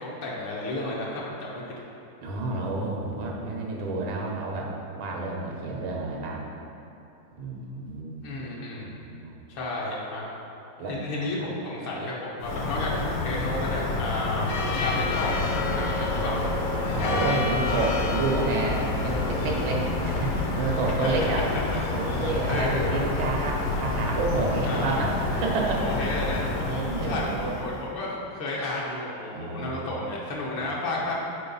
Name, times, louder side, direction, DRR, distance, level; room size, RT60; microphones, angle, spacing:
voice 1, 0.0-1.7 8.2-8.9 9.5-10.2 10.9-15.3 15.7-16.4 20.9-21.8 22.5-23.0 24.6-25.0 25.7-26.5 27.0-31.1, left 2 dB, 80° left, -5 dB, 1.8 m, -32 dB
voice 2, 2.2-6.5 7.4-8.3 8.8-9.3 10.8-10.9 16.9-21.4 21.9-26.0 26.6-27.5 29.3-30.0 30.6-30.7, right 3 dB, 90° right, -1 dB, 1.8 m, -30 dB
sound 1, 12.4-27.9, left 2 dB, 65° left, 1.0 m, -28 dB
5.4 x 4.5 x 5.4 m, 2.9 s
omnidirectional pair, 2.2 m